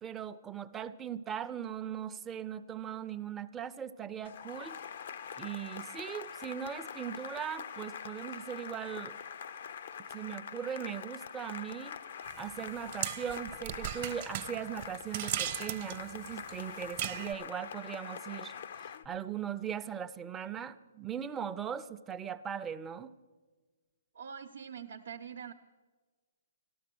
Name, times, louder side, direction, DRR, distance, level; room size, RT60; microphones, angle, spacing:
voice 1, 0.0-4.8 5.4-9.1 10.1-12.0 12.4-18.5 18.8-23.1, right 8 dB, 15° right, 10 dB, 0.5 m, -39 dB
Cheering / Applause, 4.2-19.1, left 7 dB, 60° left, 0.5 m, -44 dB
sound 1, 12.2-17.3, right 12 dB, 45° right, 0.8 m, -38 dB
voice 2, 24.1-25.5, right 7 dB, 75° right, 6 dB, 0.7 m, -44 dB
12.5 x 12.5 x 6.1 m, 1.4 s
hypercardioid pair, 135°, 0 cm